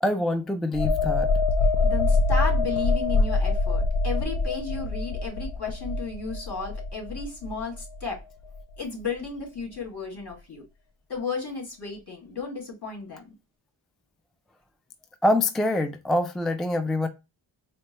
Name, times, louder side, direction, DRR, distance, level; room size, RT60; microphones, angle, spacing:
voice 1, 0.0-1.3 15.2-17.1, left 1 dB, ahead, 0.3 m, -25 dB
sound 1, 0.7-8.2 8.5-8.7, left 3 dB, 70° left, 0.5 m, -25 dB
voice 2, 1.8-8.2 8.8-10.6 11.1-13.3, left 4 dB, 55° left, 2.1 m, -34 dB
4.4 x 2.2 x 2.9 m
wide cardioid pair, 55°, 48 cm